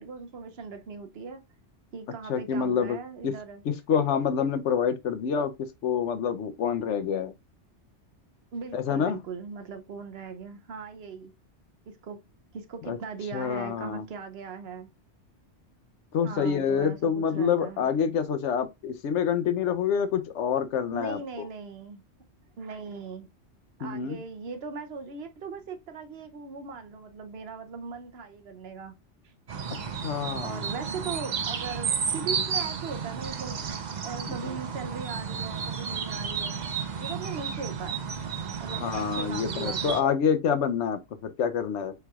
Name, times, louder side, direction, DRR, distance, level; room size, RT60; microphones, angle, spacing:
voice 1, 0.0-1.4 1.9-3.6 8.5-11.3 11.9-12.2 12.5-14.9 16.2-17.8 20.9-22.0 22.6-23.3 23.8-28.9 30.4-33.6 34.0-38.0 38.6-40.0, right 5 dB, 65° right, 0.9 m, -39 dB
voice 2, 2.3-3.0 3.2-3.3 3.9-7.3 8.7-9.2 12.8-13.0 13.3-14.0 16.1-21.5 23.8-24.2 30.0-30.6 34.4-34.5 38.7-41.9, left 7 dB, 85° left, 1.0 m, -27 dB
sound 1, 29.5-40.0, right 6 dB, 45° right, 0.7 m, -32 dB
6.7 x 3.1 x 2.3 m
omnidirectional pair, 1.2 m